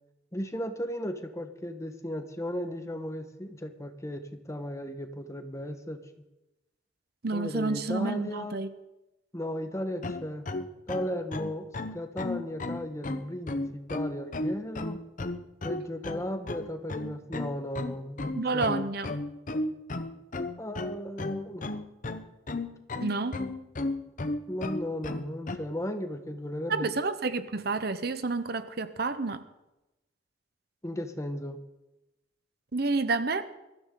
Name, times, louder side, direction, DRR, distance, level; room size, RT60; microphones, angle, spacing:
voice 1, 0.3-6.0 7.3-8.6 9.3-10.5 10.9-15.0 15.6-18.8 20.6-21.8 24.5-26.9 30.8-31.6, equal, 15° left, 7 dB, 1.2 m, -35 dB
voice 2, 7.2-8.7 18.3-19.1 23.0-23.4 26.7-29.4 32.7-33.5, right 3 dB, 60° right, 11 dB, 0.9 m, -29 dB
sound 1, 10.0-25.6, left 2 dB, 45° left, 0.9 m, -34 dB
22.5 x 13.5 x 3.9 m, 0.97 s
head